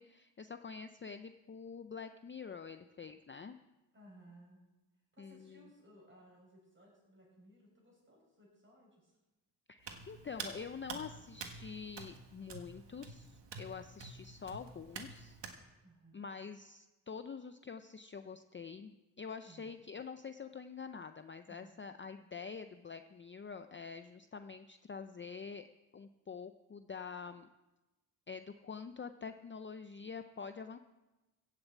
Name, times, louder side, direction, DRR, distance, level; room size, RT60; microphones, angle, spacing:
voice 1, 0.0-3.6 5.2-5.7 9.7-15.4 16.1-25.7 25.9-27.5 28.3-30.8, left 5 dB, 30° left, 9 dB, 0.5 m, -46 dB
voice 2, 3.9-4.6 5.1-9.2 15.8-16.2 19.4-19.8 21.5-21.7, right 1 dB, 30° right, -2 dB, 6.3 m, -60 dB
Hands, 9.8-15.6, right 4 dB, 80° right, 1.7 m, -48 dB
15.5 x 6.7 x 8.2 m, 1.0 s
wide cardioid pair, 125°, 42 cm